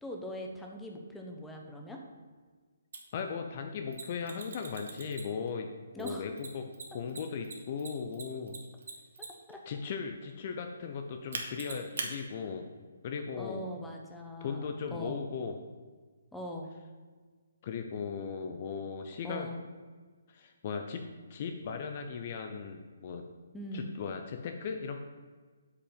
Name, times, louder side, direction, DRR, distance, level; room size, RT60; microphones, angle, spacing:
voice 1, 0.0-2.0 5.9-6.3 9.5-9.6 13.4-15.2 16.3-16.7 19.2-19.6 23.5-23.9, equal, 5° left, 1 dB, 1.2 m, -41 dB
Mechanisms, 2.9-3.0 3.9-5.5 6.0-9.5 11.3-12.1, right 4 dB, 60° right, 1.7 m, -40 dB
voice 2, 3.1-5.7 6.0-8.5 9.7-12.7 13.0-13.6 14.4-15.5 17.6-19.5 20.3-21.0 21.3-23.2 23.7-25.0, left 6 dB, 40° left, 5 dB, 0.8 m, -37 dB
8.2 x 5.6 x 7.6 m, 1.5 s
figure-of-eight pair, 135°, 0 cm